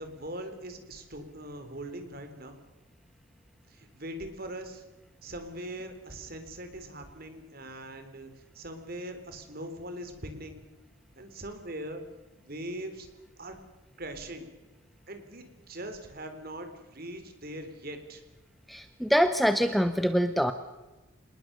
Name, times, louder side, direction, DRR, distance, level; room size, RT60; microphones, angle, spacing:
voice 1, 0.0-2.6 3.7-4.8 5.2-10.6 11.2-12.0 12.3-13.1 13.4-13.6 14.0-14.5 15.1-18.2, right 1 dB, 45° right, 7 dB, 3.6 m, -41 dB
voice 2, 18.7-20.5, equal, ahead, 10 dB, 0.8 m, -24 dB
26.5 x 20.5 x 6.8 m, 1.1 s
head